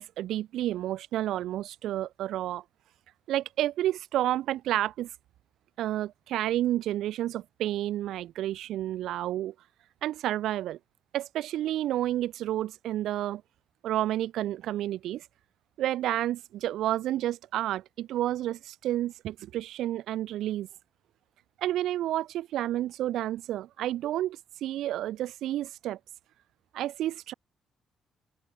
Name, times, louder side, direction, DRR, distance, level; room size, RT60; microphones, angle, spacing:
voice 1, 0.0-2.6 3.3-5.1 5.8-9.5 10.0-10.8 11.1-13.4 13.8-15.2 15.8-20.7 21.6-26.0 26.7-27.3, right 13 dB, 80° right, 3.7 m, -30 dB
open air
cardioid pair, 90°, 0 cm